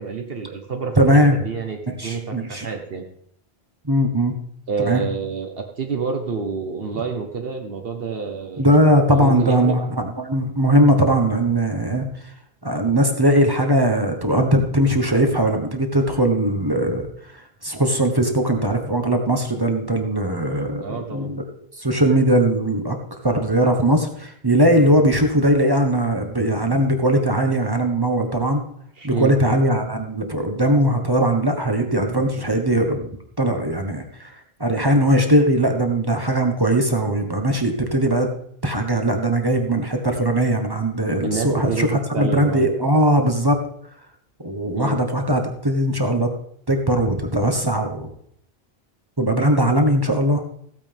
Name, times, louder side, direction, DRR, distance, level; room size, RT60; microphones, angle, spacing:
voice 1, 0.0-1.0 1.4-3.0 4.7-8.6 9.1-9.7 20.8-21.3 24.7-24.9 29.0-29.3 41.2-42.6 44.7-45.0, right 5 dB, 65° right, 3 dB, 1.3 m, -28 dB
voice 2, 1.0-1.4 1.9-2.7 3.8-4.4 4.8-5.0 8.6-12.1 12.6-17.1 17.3-20.8 21.1-21.4 21.8-23.0 23.2-28.6 29.0-34.3 34.6-38.3 38.6-43.6 44.4-46.3 46.7-48.1 49.2-50.4, right 1 dB, 20° right, 4 dB, 1.3 m, -19 dB
15.5 x 9.1 x 3.5 m, 0.68 s
omnidirectional pair, 1.1 m